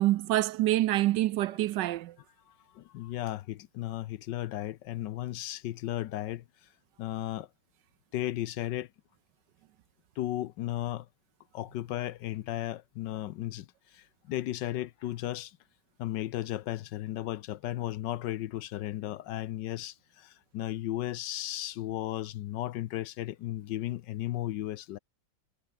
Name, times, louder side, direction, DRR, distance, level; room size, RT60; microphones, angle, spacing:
voice 1, 0.0-2.2, right 15 dB, 75° right, 1.1 m, -26 dB
voice 2, 2.8-6.4 7.0-7.5 8.1-8.9 10.2-11.0 11.5-13.6 14.3-15.5 16.0-19.9 20.5-25.0, left 14 dB, 70° left, 1.3 m, -34 dB
omnidirectional pair, 2.1 m